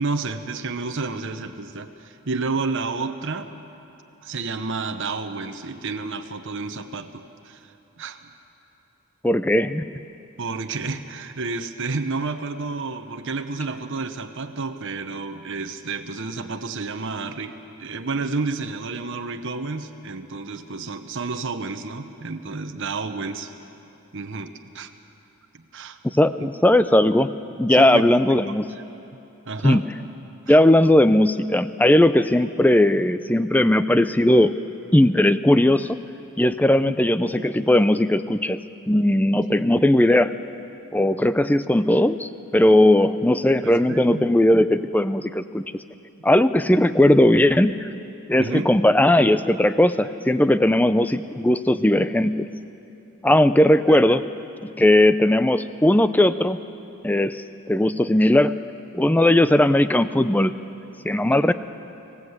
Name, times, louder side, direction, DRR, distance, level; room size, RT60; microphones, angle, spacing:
voice 1, 0.0-3.5 4.2-7.7 8.0-8.3 10.4-23.5 24.1-24.9 25.5-26.0 27.7-28.2 28.5-28.6 29.5-29.8 30.5-30.6 36.7-36.9 39.6-39.7 43.6-44.3 48.4-48.7 53.9-54.2 61.3-61.5, right 3 dB, 55° right, 6 dB, 1.0 m, -30 dB
voice 2, 9.2-9.8 26.2-27.3 27.6-28.7 29.6-29.8 30.5-34.5 34.9-36.0 36.4-38.6 38.9-40.3 40.9-45.6 46.2-47.9 48.3-52.4 53.2-54.2 54.6-56.6 57.0-58.5 58.9-60.5 61.0-61.5, left 1 dB, 5° left, 12 dB, 0.5 m, -18 dB
25.0 x 17.0 x 8.1 m, 2.9 s
head